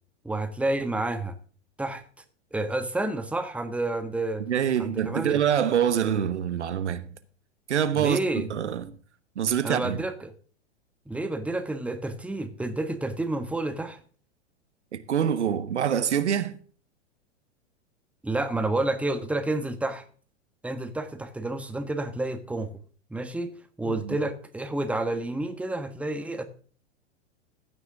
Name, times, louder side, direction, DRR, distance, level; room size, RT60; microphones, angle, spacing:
voice 1, 0.2-1.4 1.8-2.0 2.5-4.4 4.8-5.4 7.9-8.5 9.6-10.3 11.1-14.0 18.2-20.0 20.6-22.7 23.1-23.5 23.8-26.4, right 2 dB, 5° right, 1.3 m, -29 dB
voice 2, 4.5-7.1 7.7-8.9 9.4-10.0 14.9-16.6 23.8-24.2, right 9 dB, 75° right, 1.3 m, -25 dB
15.0 x 9.8 x 3.6 m
figure-of-eight pair, 100°, 35 cm